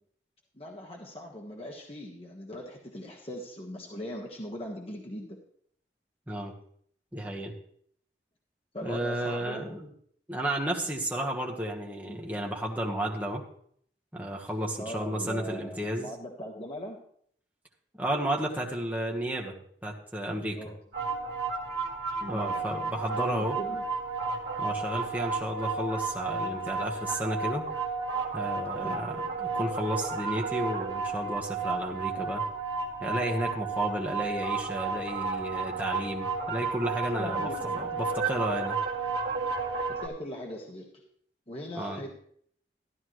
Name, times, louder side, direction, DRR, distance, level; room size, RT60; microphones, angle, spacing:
voice 1, 0.5-5.4 8.7-9.6 12.1-12.2 14.8-17.0 20.5-20.8 22.2-22.6 23.2-23.8 28.6-29.3 37.2-37.8 39.9-41.1 41.5-42.2, equal, 35° left, -1 dB, 1.3 m, -40 dB
voice 2, 7.1-7.5 8.8-9.9 10.3-13.4 14.1-16.1 18.0-20.6 22.3-23.6 24.6-27.7 28.3-32.4 33.0-37.5 37.7-38.8 41.7-42.0, right 1 dB, 10° right, 0 dB, 1.3 m, -32 dB
sound 1, 20.9-40.1, right 4 dB, 70° right, 1.5 m, -32 dB
13.0 x 10.5 x 3.1 m, 0.64 s
head